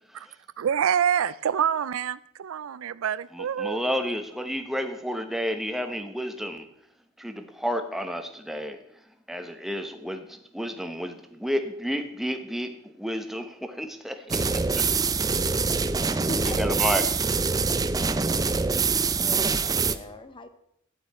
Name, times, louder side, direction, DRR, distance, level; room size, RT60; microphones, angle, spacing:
voice 1, 0.6-3.8, right 8 dB, 80° right, 18 dB, 0.4 m, -26 dB
voice 2, 3.3-6.7 7.2-8.8 9.3-14.9 15.2-15.5 16.6-17.1, equal, ahead, 6 dB, 0.9 m, -31 dB
sound 1, 14.3-19.9, right 4 dB, 20° right, 0.4 m, -24 dB
voice 3, 16.3-16.6 19.2-20.5, left 1 dB, 25° left, 10 dB, 0.8 m, -39 dB
12.5 x 9.5 x 4.3 m, 0.76 s
head